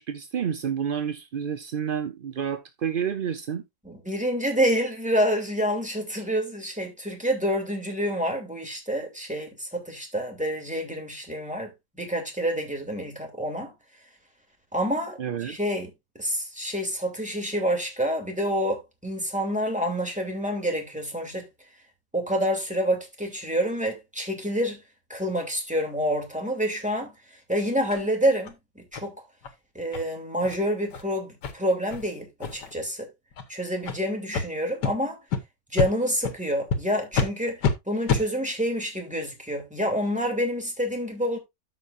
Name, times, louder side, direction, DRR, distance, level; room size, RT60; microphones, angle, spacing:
voice 1, 0.0-3.6 15.2-15.6, right 8 dB, 65° right, 0.5 m, -29 dB
voice 2, 3.8-11.7 12.0-13.7 14.7-15.9 16.1-21.4 22.1-24.8 25.1-27.1 27.5-28.5 28.9-29.1 29.7-33.1 33.5-35.2 35.7-37.6 37.9-41.4, equal, 5° right, 2.7 m, -27 dB
sound 1, 27.9-28.0 28.4-28.5 28.9-29.1 29.4-29.5 29.9-30.0 30.4-30.6 30.9-31.0 31.4-31.5 31.9-32.0 32.4-32.7 33.3-33.4 33.8-34.0 34.3-34.4 34.8-34.9 35.3-35.4 35.8-35.9 36.2-36.4 36.7-36.8 37.1-37.3 37.6-37.7 38.1-38.2, left 5 dB, 80° left, 1.8 m, -26 dB
13.5 x 5.9 x 2.5 m
omnidirectional pair, 1.8 m